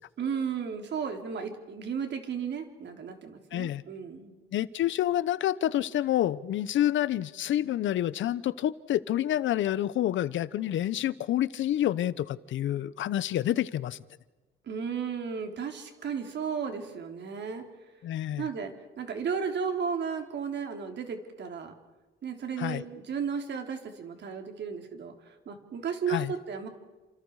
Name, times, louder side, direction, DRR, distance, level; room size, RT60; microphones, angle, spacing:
voice 1, 0.2-4.4 14.6-17.7 18.4-21.7 22.2-26.7, right 6 dB, 60° right, 4 dB, 3.9 m, -34 dB
voice 2, 3.5-3.8 4.5-14.0 18.0-18.5 22.6-22.8 26.1-26.3, left 12 dB, 75° left, 17 dB, 1.0 m, -28 dB
30.0 x 27.5 x 4.9 m, 1.2 s
cardioid pair, 90°, 20 cm